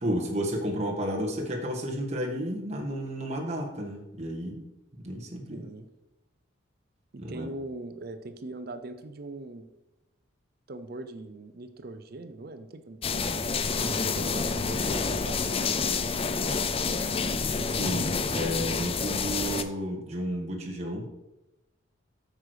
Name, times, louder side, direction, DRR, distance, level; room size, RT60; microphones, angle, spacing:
voice 1, 0.0-4.6 5.0-5.6 7.2-7.5 17.7-21.0, equal, 35° right, 0 dB, 1.5 m, -32 dB
voice 2, 5.5-5.9 7.1-9.7 10.7-16.6, right 2 dB, 50° right, 9 dB, 0.6 m, -41 dB
sound 1, 13.0-19.6, left 4 dB, 30° left, 0.4 m, -28 dB
8.5 x 6.3 x 4.9 m, 0.98 s
head